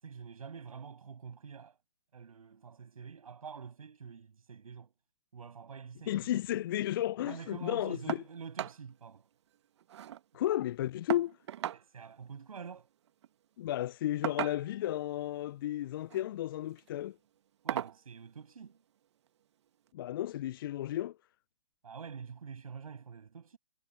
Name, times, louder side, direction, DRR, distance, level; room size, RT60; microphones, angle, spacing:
voice 1, 0.0-1.8 2.1-4.9 5.3-6.3 7.2-9.3 11.7-12.9 17.6-18.8 21.8-23.6, right 6 dB, 60° right, 7.0 m, -47 dB
voice 2, 6.1-8.2 10.3-11.4 13.6-17.2 19.9-21.2, left 13 dB, 35° left, 0.6 m, -33 dB
sound 1, 8.1-8.3 8.6-8.8 9.2-9.3 9.5-10.2 11.1-11.8 13.1-13.3 14.2-14.9 15.9-16.2 16.7-16.9 17.7-18.0 19.3-19.4 19.9-20.0, right 11 dB, 45° right, 1.6 m, -37 dB
figure-of-eight pair, 130°, 20 cm